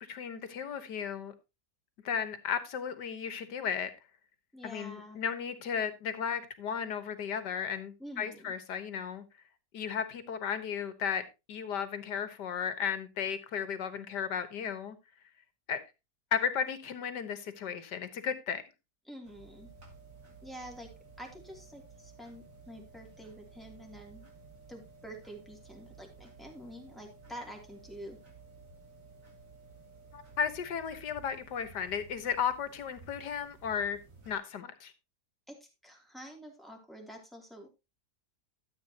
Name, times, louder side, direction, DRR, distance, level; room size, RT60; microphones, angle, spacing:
voice 1, 0.1-1.3 2.0-3.9 4.6-9.2 9.7-15.0 15.7-15.8 16.3-18.6 30.1-34.0 34.3-34.9, left 7 dB, 85° left, 1.9 m, -34 dB
voice 2, 4.5-5.2 8.0-8.5 19.0-19.7 20.4-20.9 21.2-24.3 24.7-28.2 35.5-37.7, equal, ahead, 2.7 m, -47 dB
sound 1, 19.2-34.4, right 4 dB, 50° right, 3.0 m, -55 dB
13.0 x 8.3 x 2.8 m
omnidirectional pair, 1.8 m